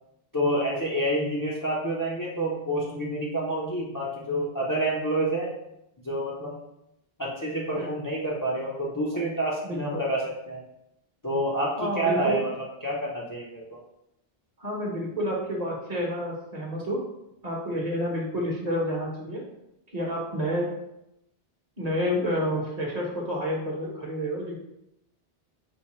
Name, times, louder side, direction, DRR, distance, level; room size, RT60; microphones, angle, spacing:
voice 1, 0.3-5.5 6.0-6.6 7.2-10.6 11.2-12.5 12.8-13.8, right 1 dB, 25° left, -5 dB, 0.5 m, -28 dB
voice 2, 9.6-10.0 11.8-12.4 14.6-17.0 17.4-19.4 19.9-20.7 21.8-24.6, equal, 40° right, -3 dB, 1.0 m, -29 dB
4.6 x 2.2 x 4.2 m, 0.84 s
omnidirectional pair, 1.1 m